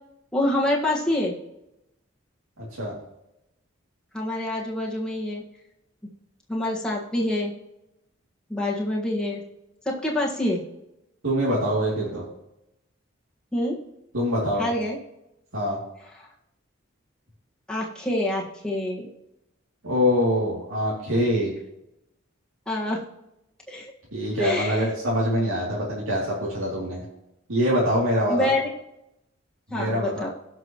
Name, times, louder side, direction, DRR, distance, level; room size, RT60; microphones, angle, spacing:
voice 1, 0.3-1.3 4.1-5.4 6.5-7.5 8.5-9.4 9.8-10.6 13.5-13.8 14.6-15.0 16.2-16.3 17.7-19.1 22.7-23.0 23.7-23.9 24.4-24.9 28.3-28.7 29.7-30.3, left 1 dB, 5° left, -4 dB, 1.6 m, -26 dB
voice 2, 2.6-2.9 11.2-12.3 14.1-14.7 15.5-15.8 19.8-21.5 24.1-27.0 27.5-28.5 29.7-30.3, equal, 85° right, -6 dB, 2.8 m, -24 dB
17.5 x 6.1 x 3.1 m, 0.86 s
head